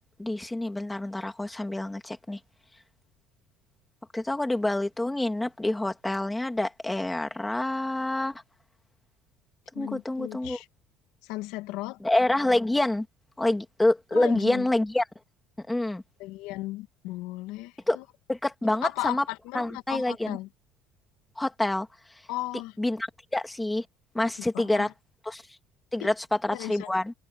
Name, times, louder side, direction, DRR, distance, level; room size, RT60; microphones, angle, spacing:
voice 1, 0.2-2.4 4.1-8.4 9.8-10.6 12.0-13.1 13.4-15.0 15.7-16.0 17.9-18.0 18.3-19.2 19.5-20.4 21.4-21.9 22.8-23.1 23.3-23.8 24.1-24.9 25.3-25.4 25.9-27.1, left 1 dB, 5° left, 2.5 m, -27 dB
voice 2, 9.7-10.7 11.2-12.0 14.1-14.7 16.2-18.0 18.8-20.5 22.3-22.7 24.5-24.9 26.0-26.1 26.5-26.9, left 18 dB, 80° left, 1.7 m, -36 dB
cardioid pair, 145°, 0 cm